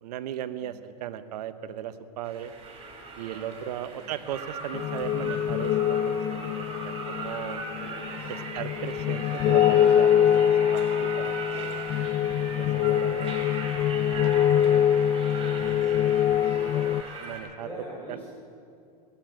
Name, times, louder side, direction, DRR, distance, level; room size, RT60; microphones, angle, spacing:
voice 1, 0.0-2.5 3.2-7.6 8.3-11.8 12.6-13.6 14.7-15.1 17.2-17.7 18.1-18.2, right 10 dB, 80° right, 11 dB, 0.9 m, -37 dB
sound 1, 2.2-17.4, right 3 dB, 25° right, 3.5 m, -39 dB
voice 2, 3.8-4.1 7.7-8.4 17.6-18.2, right 1 dB, 10° left, -8 dB, 4.8 m, -43 dB
sound 2, 4.7-17.0, left 10 dB, 30° left, 0.3 m, -24 dB
16.5 x 8.7 x 8.8 m, 2.4 s
supercardioid pair, 120°, 20 cm